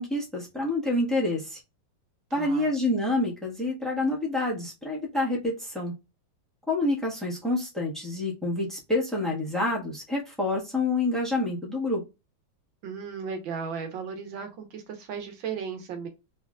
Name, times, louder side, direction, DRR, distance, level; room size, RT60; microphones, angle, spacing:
voice 1, 0.0-1.6 2.3-5.9 6.7-12.0, left 2 dB, ahead, -3 dB, 1.0 m, -27 dB
voice 2, 2.3-2.7 12.8-16.1, right 6 dB, 80° right, 5 dB, 1.7 m, -35 dB
3.7 x 3.4 x 2.4 m, 0.25 s
omnidirectional pair, 2.1 m